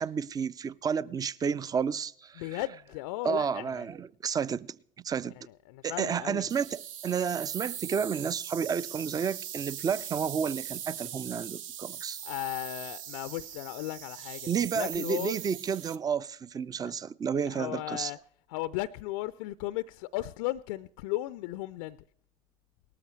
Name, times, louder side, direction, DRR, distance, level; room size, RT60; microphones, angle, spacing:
voice 1, 0.0-2.6 3.2-4.7 5.0-5.3 5.8-12.2 14.5-18.1, right 7 dB, 20° right, 0.4 m, -31 dB
voice 2, 2.4-3.9 5.7-6.5 12.2-14.5 14.7-15.4 16.8-16.9 17.5-18.2 18.5-22.0, left 17 dB, 60° left, 0.4 m, -35 dB
sound 1, 6.5-16.0, right 10 dB, 70° right, 0.6 m, -40 dB
18.5 x 13.5 x 3.2 m
figure-of-eight pair, 70°, 18 cm